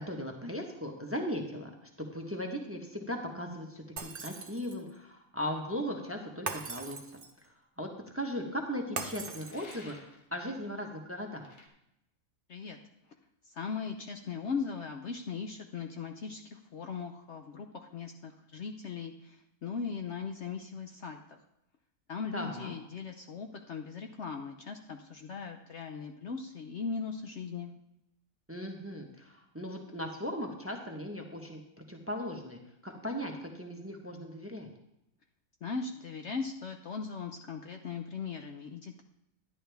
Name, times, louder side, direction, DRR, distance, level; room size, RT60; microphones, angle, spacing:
voice 1, 0.0-7.0 7.4-11.5 22.3-22.7 28.5-31.6 31.9-34.7, equal, 10° right, 2 dB, 1.0 m, -38 dB
Shatter, 4.0-4.9 6.5-7.5 9.0-10.0, right 4 dB, 40° right, 0.9 m, -40 dB
sound 1, 9.5-10.3 11.4-11.7, left 3 dB, 85° left, 1.8 m, -52 dB
voice 2, 13.4-21.4 22.1-27.7 35.6-39.0, left 5 dB, 60° left, 5 dB, 0.9 m, -39 dB
11.0 x 11.0 x 3.4 m, 0.82 s
omnidirectional pair, 1.6 m